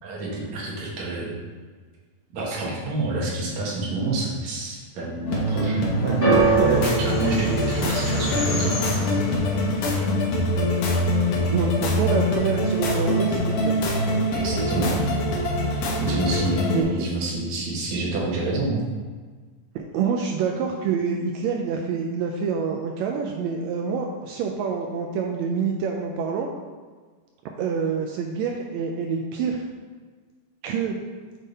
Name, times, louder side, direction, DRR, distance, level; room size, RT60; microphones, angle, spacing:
voice 1, 0.0-1.3 2.3-8.8 14.3-15.0 16.0-18.8, right 2 dB, 65° right, -4 dB, 2.5 m, -27 dB
sound 1, 5.3-16.8, left 1 dB, 75° left, 2.3 m, -24 dB
sound 2, 5.7-11.1, equal, 50° left, 1.8 m, -33 dB
sound 3, 6.2-12.5 12.7-13.4 14.1-14.2, right 3 dB, 10° left, 0.8 m, -28 dB
voice 2, 11.5-13.7 16.7-17.1 19.7-26.5 27.6-29.7 30.6-31.0, right 5 dB, 85° right, 2 dB, 1.6 m, -26 dB
7.4 x 3.6 x 4.0 m, 1.5 s
omnidirectional pair, 3.6 m